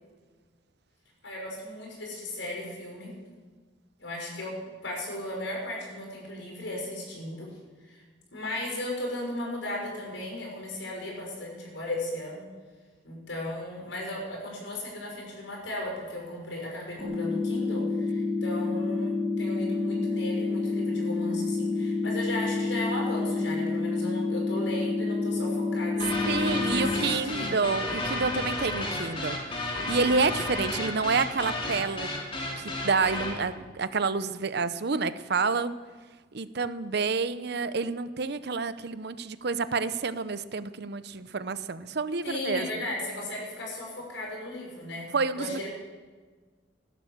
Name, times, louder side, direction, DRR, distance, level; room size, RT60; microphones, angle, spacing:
voice 1, 1.2-3.1 4.0-4.5 4.8-7.5 7.8-8.0 8.3-12.5 13.0-27.5 42.2-45.1 45.3-45.7, left 1 dB, 85° left, -1 dB, 5.7 m, -36 dB
sound 1, 17.0-27.0, left 3 dB, 5° left, 3.7 m, -28 dB
sound 2, 26.0-33.4, left 2 dB, 30° left, 2.7 m, -32 dB
voice 2, 26.3-32.1 32.6-35.8 36.3-42.7 45.1-45.7, right 4 dB, 60° right, 13 dB, 0.7 m, -29 dB
16.0 x 11.5 x 7.3 m, 1.4 s
head